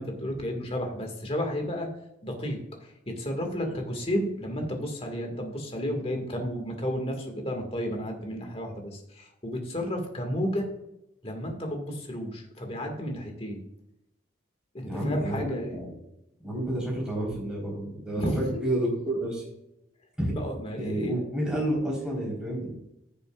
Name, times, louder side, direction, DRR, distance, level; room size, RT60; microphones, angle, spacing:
voice 1, 0.0-1.9 2.2-10.7 11.2-13.6 14.7-15.8 18.2-18.7 20.3-21.1, equal, 30° left, 3 dB, 1.8 m, -32 dB
voice 2, 14.8-16.0 16.4-19.4 20.2-20.4 20.7-22.8, right 1 dB, 5° right, -4 dB, 3.9 m, -30 dB
16.0 x 6.7 x 2.4 m, 0.85 s
head